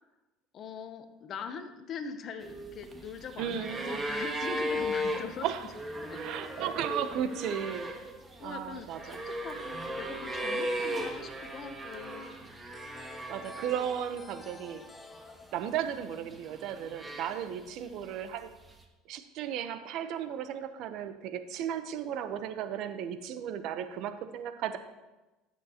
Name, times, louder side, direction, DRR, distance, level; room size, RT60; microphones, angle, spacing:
voice 1, 0.5-5.5 6.0-6.2 6.5-7.2 8.4-12.3, left 5 dB, 45° left, 9 dB, 0.9 m, -42 dB
sound 1, 2.4-14.1 14.4-15.3 16.0-17.7 18.8-18.9, equal, 20° right, 1.3 m, -37 dB
voice 2, 3.4-4.0 5.4-5.7 6.2-7.9 8.4-9.2 13.1-14.8 15.5-18.5 19.1-24.8, right 9 dB, 60° right, 10 dB, 0.8 m, -35 dB
sound 2, 12.7-17.4, left 4 dB, 20° left, 0.7 m, -52 dB
15.5 x 7.4 x 2.9 m, 1.1 s
supercardioid pair, 100°, 0 cm